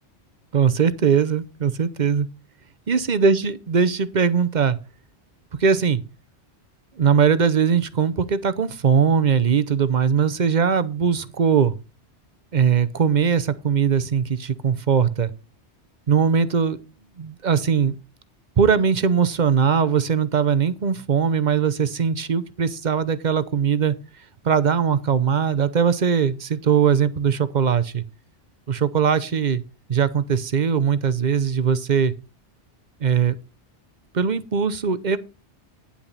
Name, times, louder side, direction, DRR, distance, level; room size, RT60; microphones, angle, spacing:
voice 1, 0.5-2.3 2.9-4.8 5.6-6.0 7.0-11.8 12.5-15.3 16.1-16.8 17.2-18.0 18.6-23.9 24.4-28.0 28.7-29.6 29.9-32.1 33.0-33.4 34.1-35.2, right 6 dB, 45° right, 15 dB, 0.8 m, -20 dB
9.9 x 8.9 x 4.1 m, 0.31 s
omnidirectional pair, 1.2 m